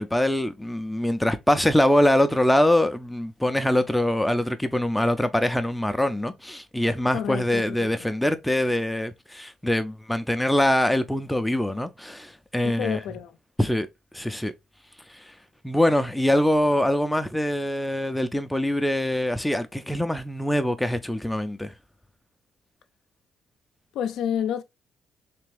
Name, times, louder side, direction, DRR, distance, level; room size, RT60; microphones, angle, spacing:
voice 1, 0.0-13.0 13.6-13.9 14.1-14.5 15.1-15.3 15.6-21.7, left 1 dB, 5° left, 0.4 m, -23 dB
voice 2, 7.1-8.1 12.6-13.4 23.9-24.6, left 9 dB, 85° left, 0.4 m, -30 dB
3.4 x 3.3 x 3.3 m
cardioid pair, 90°, 0 cm